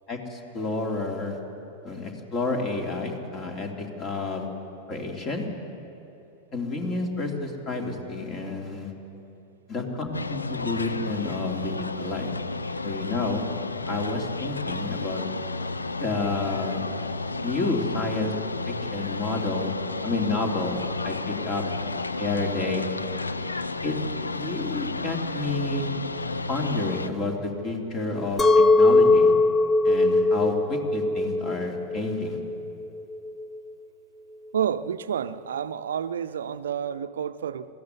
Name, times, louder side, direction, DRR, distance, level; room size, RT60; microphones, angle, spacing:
voice 1, 0.1-1.4 1.8-4.4 4.9-5.4 6.5-8.9 9.7-12.3 12.8-13.4 13.9-15.2 16.0-16.8 17.4-18.3 18.9-19.7 20.0-21.6 22.2-22.8 23.8-23.9 24.3-25.9 26.5-27.4 27.6-29.3 29.8-32.4, left 3 dB, 30° left, 3.2 m, -30 dB
sound 1, 10.1-27.1, left 3 dB, 80° left, 0.7 m, -32 dB
Chink clink, 28.4-33.6, left 2 dB, 15° left, 0.7 m, -20 dB
voice 2, 34.5-37.7, right 8 dB, 65° right, 0.7 m, -29 dB
21.0 x 15.0 x 9.7 m
figure-of-eight pair, 90°, 0 cm